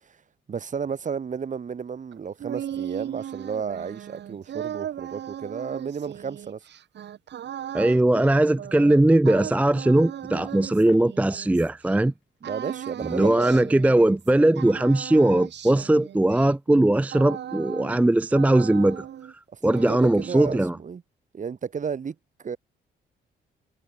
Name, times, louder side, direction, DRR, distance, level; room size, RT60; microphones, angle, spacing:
voice 1, 0.5-6.6 12.4-13.6 19.5-19.6 19.9-21.0 21.3-22.6, right 6 dB, 40° right, 1.6 m, -32 dB
sound 1, 2.1-12.0 12.4-14.3 14.6-18.1 18.3-19.3 19.6-20.6, right 10 dB, 60° right, 1.5 m, -37 dB
voice 2, 7.7-12.1 13.1-20.8, right 1 dB, 5° right, 0.5 m, -20 dB
sound 2, 10.1-19.6, left 13 dB, 80° left, 7.9 m, -59 dB
cardioid pair, 90°, 20 cm